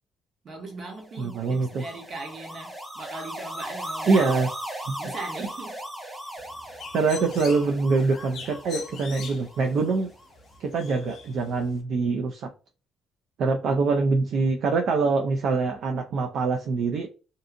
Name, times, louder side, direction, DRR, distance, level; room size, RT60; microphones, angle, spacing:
voice 1, 0.4-4.3 5.0-5.8 6.2-6.3, right 2 dB, 45° right, 0.9 m, -39 dB
sound 1, 1.0-10.3, right 1 dB, 5° right, 0.6 m, -38 dB
voice 2, 1.2-1.8 4.1-4.5 4.9-5.0 6.9-10.1 10.6-12.5 13.4-17.1, right 4 dB, 65° right, 0.3 m, -24 dB
Bird, 6.4-11.8, left 6 dB, 60° left, 0.6 m, -44 dB
2.6 x 2.5 x 2.4 m
cardioid pair, 125°, 0 cm